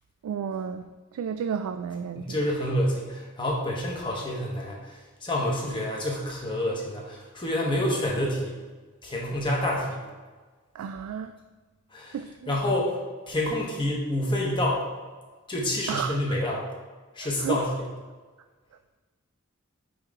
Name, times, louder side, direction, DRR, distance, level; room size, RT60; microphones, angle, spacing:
voice 1, 0.2-0.8 1.1-2.4 10.8-11.3 12.1-12.6 15.9-16.2 17.4-17.6, right 7 dB, 90° right, 9 dB, 0.3 m, -32 dB
voice 2, 2.1-8.6 9.0-10.0 11.9-12.2 12.5-13.0 13.3-14.8 15.5-16.7 17.1-17.9, left 1 dB, 20° left, -3 dB, 1.1 m, -28 dB
9.1 x 3.2 x 3.7 m, 1.3 s
head